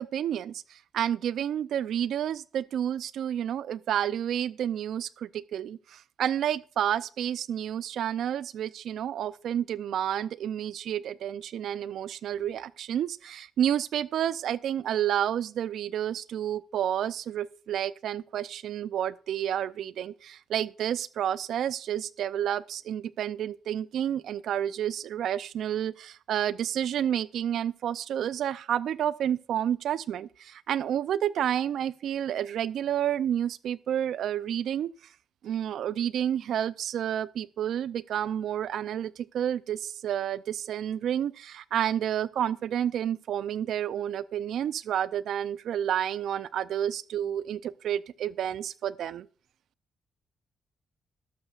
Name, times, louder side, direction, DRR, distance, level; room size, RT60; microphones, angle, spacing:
voice 1, 0.0-34.9 35.4-49.3, right 10 dB, 75° right, 0.5 m, -30 dB
13.5 x 12.0 x 2.5 m
supercardioid pair, 65°, 0 cm